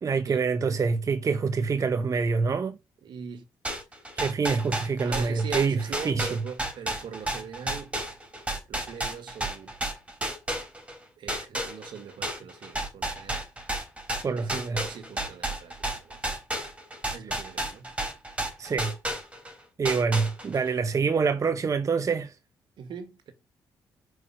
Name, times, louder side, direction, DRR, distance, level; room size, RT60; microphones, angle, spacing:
voice 1, 0.0-2.8 4.2-6.4 14.2-14.9 18.6-18.9 19.8-22.3, right 5 dB, 40° right, 0.8 m, -26 dB
voice 2, 3.0-3.4 5.0-8.0 8.7-9.7 11.2-13.5 14.3-16.2 17.1-17.9 22.8-23.3, right 7 dB, 70° right, 1.6 m, -41 dB
sound 1, 3.6-11.0 11.3-19.5 19.8-20.7, right 1 dB, 15° right, 3.3 m, -32 dB
5.5 x 4.7 x 6.2 m
supercardioid pair, 65°, 8 cm